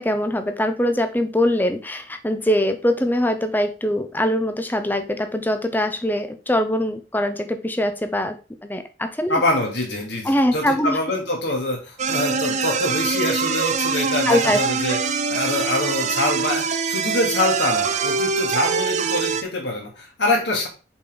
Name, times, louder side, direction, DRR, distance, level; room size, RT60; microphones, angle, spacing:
voice 1, 0.0-8.4 8.6-9.4 10.2-11.0 14.3-14.6, left 1 dB, 10° left, 7 dB, 0.7 m, -22 dB
voice 2, 9.3-20.7, left 2 dB, 65° left, 0 dB, 2.8 m, -25 dB
sound 1, 12.0-19.4, right 5 dB, 40° right, 0.6 m, -23 dB
7.2 x 5.2 x 3.9 m, 0.33 s
head